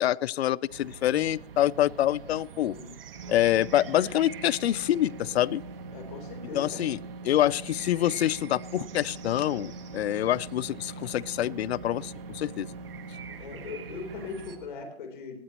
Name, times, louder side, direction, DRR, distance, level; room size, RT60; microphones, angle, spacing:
voice 1, 0.0-2.8 3.3-5.6 6.5-7.0 7.2-12.7, left 13 dB, 80° left, 23 dB, 0.5 m, -26 dB
sound 1, 0.7-14.6, right 7 dB, 60° right, 1.5 m, -45 dB
sound 2, 3.0-14.7, right 2 dB, 35° right, 1.1 m, -44 dB
voice 2, 5.9-6.9 13.4-15.4, left 4 dB, 50° left, 6 dB, 3.6 m, -40 dB
18.5 x 13.5 x 3.0 m, 0.64 s
hypercardioid pair, 180°, 32 cm